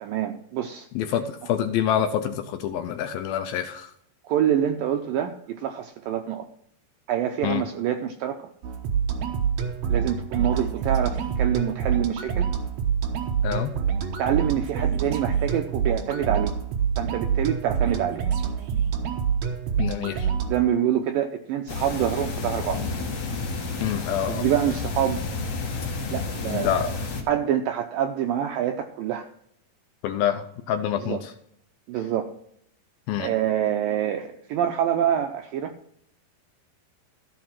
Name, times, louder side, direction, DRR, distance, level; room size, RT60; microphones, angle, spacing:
voice 1, 0.0-0.9 4.3-6.5 7.1-8.4 9.9-12.5 14.2-16.5 17.0-18.2 20.5-22.9 24.3-25.2 26.1-26.9 27.3-29.3 31.0-31.2 31.9-32.3 33.2-35.7, right 10 dB, 80° right, 5 dB, 2.0 m, -26 dB
voice 2, 1.0-3.9 7.4-7.6 13.4-13.7 19.8-20.3 23.8-24.5 26.5-26.9 30.0-31.3 33.1-33.3, left 10 dB, 80° left, 7 dB, 2.2 m, -26 dB
sound 1, 8.6-20.6, right 7 dB, 65° right, 1.8 m, -26 dB
sound 2, 21.7-27.2, left 3 dB, 50° left, 3.0 m, -30 dB
14.0 x 5.4 x 5.8 m, 0.69 s
omnidirectional pair, 4.7 m